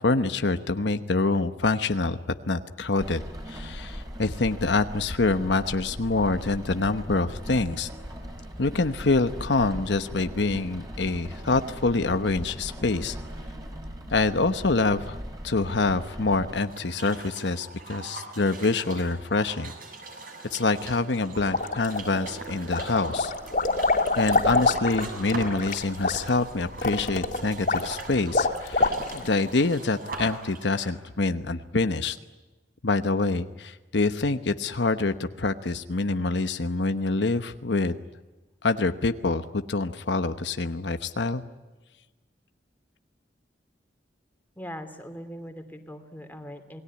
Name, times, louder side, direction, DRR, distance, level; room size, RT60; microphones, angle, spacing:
voice 1, 0.0-2.2 2.5-3.2 3.5-7.9 8.6-13.2 14.1-15.2 15.4-19.7 20.5-23.3 24.2-32.2 32.8-38.0 38.6-41.4, left 3 dB, 75° left, 9 dB, 1.0 m, -26 dB
Rain, 3.0-16.6, equal, 20° right, 4.8 m, -39 dB
sound 1, 16.6-30.9, right 3 dB, 50° right, 6.7 m, -41 dB
sound 2, 21.5-22.3 22.7-29.4, left 3 dB, 50° left, 3.1 m, -26 dB
voice 2, 44.6-46.8, equal, 10° left, 6 dB, 2.8 m, -40 dB
28.0 x 20.0 x 9.7 m, 1.2 s
head